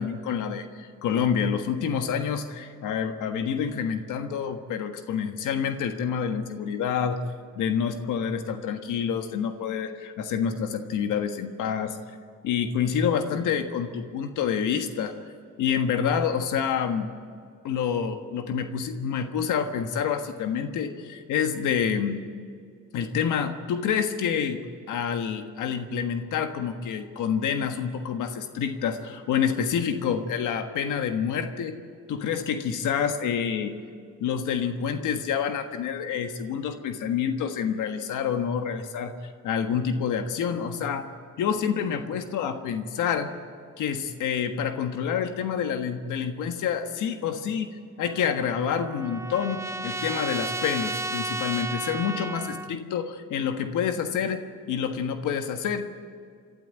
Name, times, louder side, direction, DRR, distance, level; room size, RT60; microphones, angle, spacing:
voice 1, 0.0-7.2 7.6-12.0 12.4-15.1 15.6-17.1 17.6-22.2 22.9-24.6 24.9-31.8 32.1-33.8 34.2-39.1 39.4-41.1 41.4-43.3 43.8-54.4 54.7-55.9, left 7 dB, 85° left, 7 dB, 1.5 m, -28 dB
Trumpet, 48.0-52.7, right 2 dB, 10° right, 0.7 m, -33 dB
26.5 x 12.5 x 9.5 m, 2.3 s
cardioid pair, 90°, 30 cm